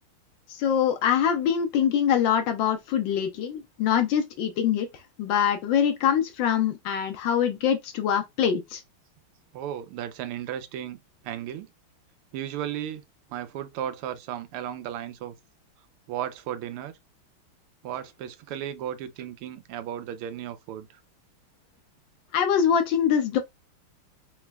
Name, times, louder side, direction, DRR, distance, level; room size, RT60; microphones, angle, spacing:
voice 1, 0.5-4.9 5.2-8.8 22.3-23.4, left 8 dB, 75° left, 1.2 m, -24 dB
voice 2, 9.5-11.0 11.2-11.7 12.3-13.0 13.3-15.3 16.1-16.9 17.8-21.0, right 10 dB, 85° right, 1.5 m, -35 dB
4.0 x 3.1 x 2.2 m
omnidirectional pair, 2.3 m